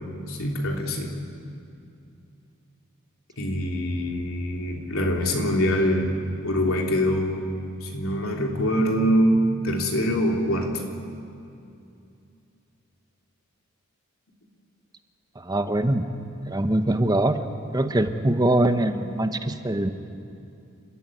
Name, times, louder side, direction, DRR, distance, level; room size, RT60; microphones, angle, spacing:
voice 1, 0.3-1.1 3.4-7.5 7.8-10.8, equal, 80° left, 0 dB, 3.3 m, -24 dB
voice 2, 15.4-16.1 16.5-17.4 17.7-19.9, right 1 dB, 20° right, 8 dB, 0.9 m, -23 dB
29.5 x 13.5 x 9.8 m, 2.6 s
head